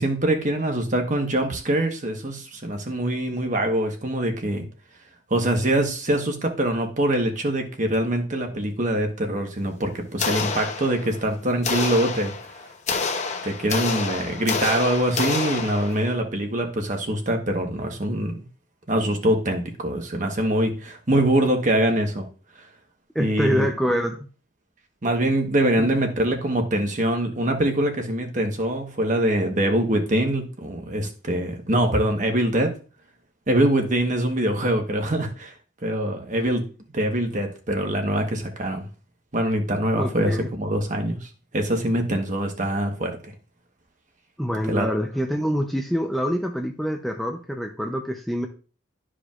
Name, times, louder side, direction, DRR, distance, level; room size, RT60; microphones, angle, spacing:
voice 1, 0.0-4.6 5.3-12.3 13.4-18.4 18.9-22.3 23.2-23.7 25.0-32.7 33.5-35.5 35.8-36.6 36.9-38.8 39.3-41.2 41.5-43.3 44.7-44.9, right 1 dB, 40° right, 4 dB, 1.2 m, -24 dB
sound 1, 10.2-11.2 11.6-16.1, left 4 dB, 35° left, 0.8 m, -28 dB
voice 2, 23.1-24.2 25.8-25.9 40.0-40.5 44.4-48.5, equal, ahead, 2 dB, 0.5 m, -25 dB
12.0 x 4.9 x 2.4 m, 0.37 s
head